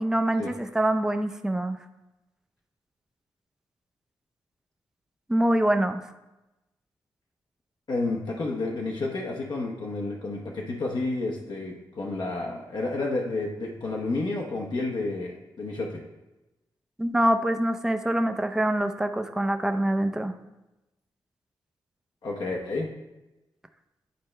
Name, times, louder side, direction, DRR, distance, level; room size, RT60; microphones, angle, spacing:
voice 1, 0.0-1.8 5.3-6.0 17.0-20.3, right 1 dB, 5° right, 7 dB, 0.5 m, -25 dB
voice 2, 7.9-16.0 22.2-22.9, left 2 dB, 60° left, -1 dB, 0.8 m, -30 dB
9.3 x 4.3 x 3.2 m, 0.99 s
cardioid pair, 70°, 8 cm